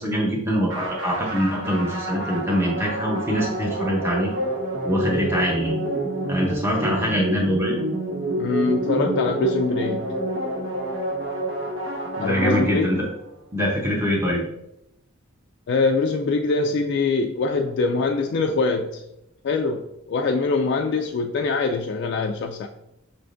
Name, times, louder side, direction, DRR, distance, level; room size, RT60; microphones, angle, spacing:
voice 1, 0.0-4.3 4.8-5.8 6.3-7.8 12.2-13.0 13.5-14.4, equal, 10° right, -2 dB, 0.7 m, -23 dB
sound 1, 0.7-13.2, right 1 dB, 65° right, 1.0 m, -28 dB
voice 2, 8.4-10.1 12.2-12.9 15.7-19.0 19.4-22.7, left 3 dB, 55° left, 4 dB, 0.3 m, -23 dB
5.7 x 3.4 x 2.5 m, 0.85 s
head